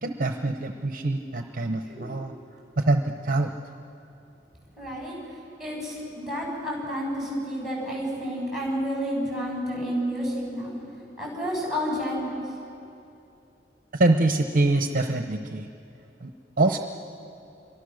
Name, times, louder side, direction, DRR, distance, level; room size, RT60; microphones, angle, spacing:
voice 1, 0.0-2.3 2.8-3.5 13.9-15.7 16.2-16.3 16.6-16.8, right 2 dB, 50° right, 5 dB, 0.9 m, -24 dB
voice 2, 4.8-5.2 5.6-10.8 11.2-12.3, equal, 5° right, -3 dB, 7.4 m, -30 dB
28.0 x 24.0 x 6.5 m, 2.7 s
head